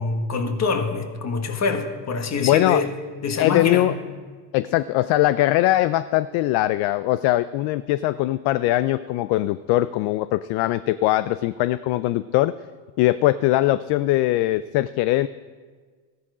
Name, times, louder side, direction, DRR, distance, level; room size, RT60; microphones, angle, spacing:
voice 1, 0.0-2.9 3.2-3.9, left 4 dB, 35° left, 6 dB, 1.6 m, -25 dB
voice 2, 2.4-2.8 3.4-3.9 4.5-12.5 13.0-15.3, left 16 dB, 55° left, 15 dB, 0.5 m, -21 dB
14.0 x 11.0 x 4.9 m, 1.5 s
supercardioid pair, 105°, 47 cm